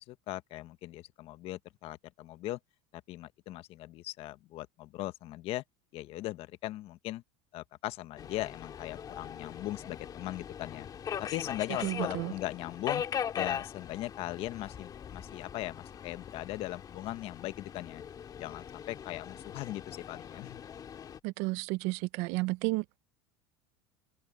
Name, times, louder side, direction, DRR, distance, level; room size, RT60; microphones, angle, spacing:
voice 1, 0.0-2.6 2.9-5.6 5.9-7.2 7.5-10.9 11.2-13.0 13.3-18.0 18.4-20.6, left 16 dB, 50° left, 1.1 m, -39 dB
Subway metro underground, 8.2-21.2, left 8 dB, 30° left, 2.3 m, -40 dB
voice 2, 11.8-12.3 21.2-23.0, right 23 dB, 65° right, 0.6 m, -32 dB
open air
supercardioid pair, 130°, 12 cm